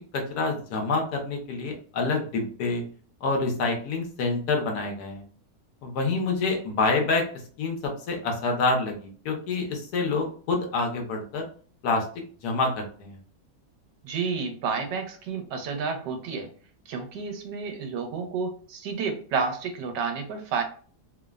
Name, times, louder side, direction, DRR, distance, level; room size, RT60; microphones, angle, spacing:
voice 1, 0.1-2.8 3.2-5.2 5.8-7.3 7.6-11.4 11.8-12.1 12.4-13.2, left 3 dB, 70° left, 2 dB, 1.2 m, -27 dB
voice 2, 14.0-16.5 16.9-20.6, right 5 dB, 85° right, 4 dB, 1.3 m, -30 dB
3.2 x 2.0 x 2.3 m, 0.44 s
omnidirectional pair, 1.9 m